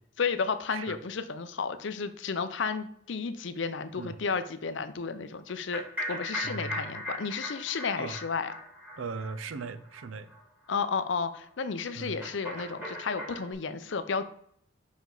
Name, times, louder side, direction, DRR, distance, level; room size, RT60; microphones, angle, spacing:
voice 1, 0.2-5.8 6.1-8.5 10.7-14.2, left 5 dB, 70° left, 0.6 m, -32 dB
sound 1, 5.5-10.0 10.3-10.4 10.7-10.8 11.1-11.2 12.2-13.5, left 1 dB, 10° right, 2.1 m, -38 dB
voice 2, 6.4-7.0 8.0-8.2 9.0-10.3 11.9-12.2, right 4 dB, 90° right, 0.5 m, -38 dB
5.5 x 5.0 x 3.9 m
head